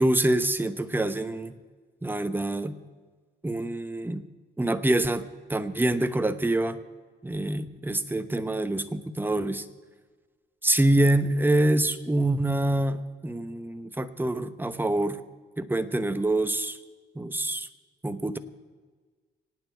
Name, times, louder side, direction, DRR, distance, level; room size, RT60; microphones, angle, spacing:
voice 1, 0.0-1.6 2.0-2.8 3.4-4.2 4.6-6.8 7.2-9.6 10.6-15.2 15.6-16.8 17.1-17.7 18.0-18.4, right 1 dB, 10° right, 10 dB, 1.0 m, -26 dB
25.5 x 9.3 x 4.6 m, 1.4 s
cardioid pair, 90°, 20 cm